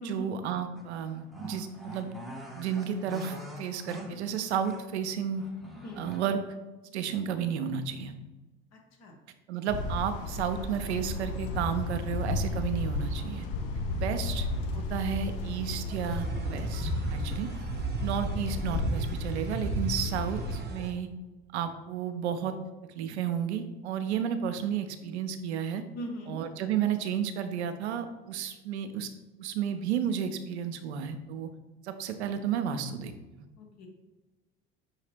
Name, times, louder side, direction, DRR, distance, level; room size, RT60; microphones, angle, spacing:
voice 1, 0.0-2.1 2.6-5.4 6.0-6.4 6.9-8.1 9.5-13.5 13.9-14.5 14.7-17.5 18.0-21.1 21.5-22.5 23.0-25.8 26.3-29.1 29.4-31.5 31.8-33.1, right 8 dB, 85° right, 9 dB, 0.5 m, -32 dB
sound 1, 0.7-5.0 5.4-6.2, equal, ahead, 0.8 m, -44 dB
voice 2, 8.7-9.1 17.9-18.0 25.9-26.4 33.6-33.9, equal, 50° left, 3 dB, 1.2 m, -41 dB
sound 2, 9.7-20.6, left 2 dB, 65° left, 0.7 m, -33 dB
sound 3, 15.9-20.9, right 5 dB, 30° right, 0.8 m, -37 dB
5.6 x 2.8 x 3.3 m, 1.1 s
hypercardioid pair, 70°, 33 cm